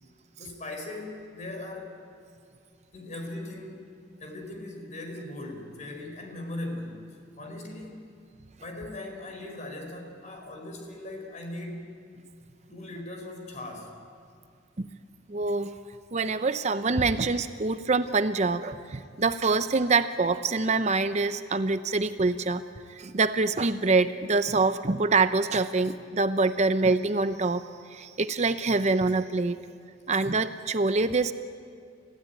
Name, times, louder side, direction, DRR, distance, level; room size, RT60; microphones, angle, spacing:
voice 1, 0.4-1.9 2.9-3.8 4.2-7.1 7.4-8.0 8.6-12.0 12.7-14.0, left 2 dB, 40° left, 3 dB, 4.5 m, -39 dB
voice 2, 15.3-15.7 16.1-22.6 22.9-27.6 27.9-29.6 30.1-31.3, right 3 dB, 40° right, 11 dB, 0.6 m, -25 dB
30.0 x 16.0 x 9.2 m, 2.3 s
head